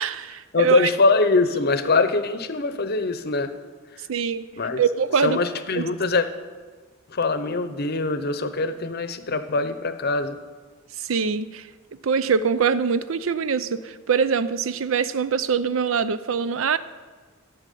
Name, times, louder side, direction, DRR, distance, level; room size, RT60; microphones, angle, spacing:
voice 1, 0.0-0.9 4.1-4.5 4.8-5.4 5.8-5.9 11.0-11.7 12.0-16.8, right 6 dB, 75° right, 14 dB, 0.5 m, -23 dB
voice 2, 0.5-3.5 4.6-4.8 5.2-6.3 7.1-10.4, left 3 dB, 50° left, 11 dB, 0.7 m, -23 dB
13.0 x 5.9 x 8.3 m, 1.4 s
head